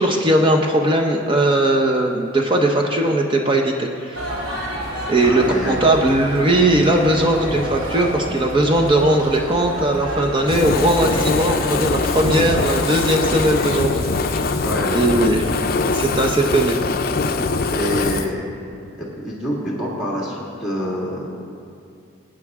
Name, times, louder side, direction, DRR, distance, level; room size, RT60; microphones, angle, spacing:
voice 1, 0.0-4.3 5.1-14.6 14.9-15.5 15.8-16.8, right 1 dB, 25° right, 1 dB, 0.7 m, -19 dB
sound 1, 4.1-15.1, equal, 90° right, 2.9 m, -30 dB
voice 2, 5.2-5.8 14.6-15.4 17.7-18.4 19.0-21.3, equal, ahead, -5 dB, 1.9 m, -26 dB
Fire, 10.5-18.3, left 4 dB, 45° left, 0.5 m, -22 dB
21.0 x 9.0 x 3.6 m, 2.5 s
head